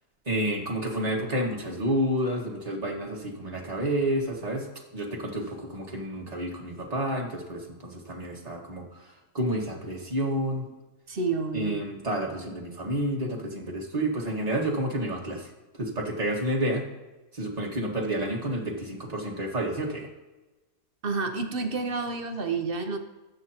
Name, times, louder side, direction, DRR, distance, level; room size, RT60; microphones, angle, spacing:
voice 1, 0.3-4.7 4.9-8.8 9.3-10.6 11.5-15.4 15.8-16.9 17.4-20.1, right 1 dB, 25° right, -2 dB, 1.9 m, -29 dB
voice 2, 11.1-11.8 21.0-23.0, right 4 dB, 45° right, 6 dB, 1.0 m, -29 dB
19.5 x 7.9 x 3.0 m, 1.1 s
omnidirectional pair, 1.6 m